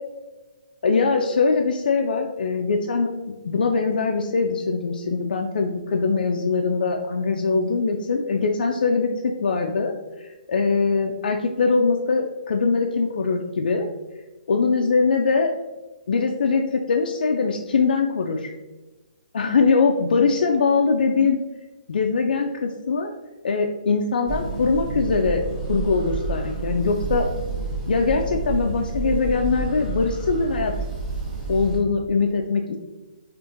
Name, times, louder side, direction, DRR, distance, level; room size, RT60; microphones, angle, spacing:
voice 1, 0.8-3.1 3.4-13.9 14.5-15.5 16.1-18.5 19.3-21.4 21.9-23.1 23.4-25.4 25.7-27.3 27.9-30.7 31.5-32.8, left 4 dB, 75° left, 1 dB, 0.3 m, -22 dB
sound 1, 24.3-31.8, right 3 dB, 25° right, 1.1 m, -29 dB
3.7 x 2.5 x 2.5 m, 1.1 s
hypercardioid pair, 160°, 5 cm